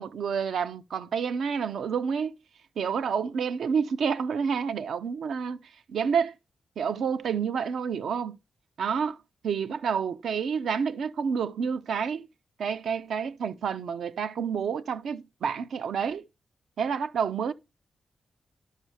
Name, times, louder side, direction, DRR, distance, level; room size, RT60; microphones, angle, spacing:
voice 1, 0.0-2.4 2.8-6.3 6.8-8.4 8.8-9.2 9.4-12.3 12.6-16.2 16.8-17.5, right 6 dB, 80° right, 0.5 m, -29 dB
11.5 x 5.4 x 3.3 m
wide cardioid pair, 135°, 0 cm